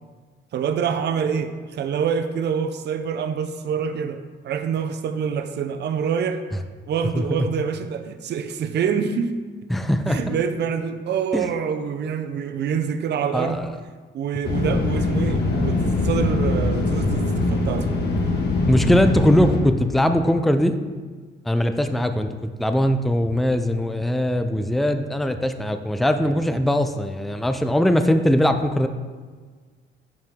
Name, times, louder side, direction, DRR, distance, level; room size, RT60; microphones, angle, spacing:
voice 1, 0.5-6.4 6.9-9.4 10.1-13.6 14.1-17.9 23.5-23.7, right 7 dB, 60° right, 9 dB, 0.6 m, -26 dB
voice 2, 7.1-7.5 9.7-10.4 11.3-11.5 13.3-13.7 18.7-20.8 21.5-28.9, left 1 dB, ahead, 8 dB, 0.4 m, -21 dB
sound 1, 14.4-19.6, left 2 dB, 55° left, 1.4 m, -22 dB
10.5 x 4.7 x 3.6 m, 1.5 s
cardioid pair, 90°, 20 cm